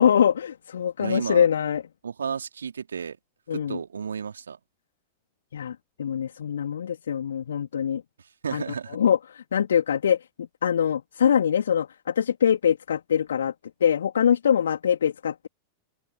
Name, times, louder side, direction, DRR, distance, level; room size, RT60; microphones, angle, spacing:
voice 1, 0.0-1.8 3.5-3.8 5.5-8.0 8.5-8.6 8.9-10.2 10.6-13.5 13.8-15.5, left 8 dB, 65° left, 3.4 m, -23 dB
voice 2, 1.0-1.5 2.0-3.2 3.5-4.6 8.4-9.0, right 6 dB, 70° right, 2.7 m, -32 dB
open air
figure-of-eight pair, 90°, 0 cm